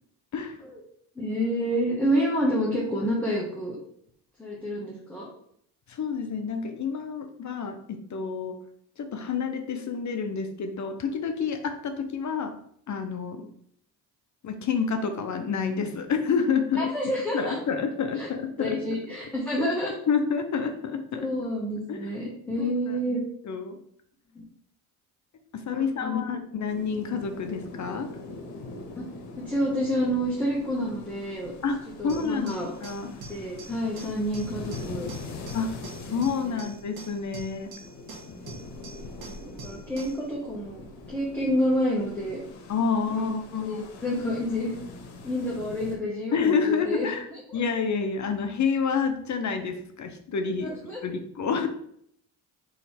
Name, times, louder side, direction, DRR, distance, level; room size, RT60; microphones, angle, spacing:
voice 1, 1.1-3.8 4.4-5.3 16.8-17.6 18.2-18.3 18.6-19.9 21.1-23.2 24.3-24.4 25.7-26.2 29.0-29.1 29.4-31.5 32.0-32.7 33.3-35.1 36.1-36.2 36.4-36.6 39.2-42.4 43.1-44.7 45.2-47.4 50.6-51.0, equal, 5° left, -6 dB, 1.3 m, -29 dB
voice 2, 5.9-8.6 9.0-12.5 12.9-13.5 14.4-16.9 17.3-18.8 19.6-19.7 20.1-21.3 21.9-22.1 22.6-23.2 23.4-23.8 25.5-28.1 31.6-31.8 32.0-32.5 32.8-33.1 35.5-35.8 36.0-37.7 42.7-43.9 46.3-47.3 47.5-50.7 51.0-51.7, left 5 dB, 45° left, 7 dB, 0.7 m, -28 dB
sound 1, 26.7-46.0, left 3 dB, 75° left, 1.1 m, -43 dB
sound 2, 32.1-40.3, right 3 dB, 60° right, 1.4 m, -45 dB
3.9 x 3.2 x 4.3 m, 0.67 s
cardioid pair, 85°, 40 cm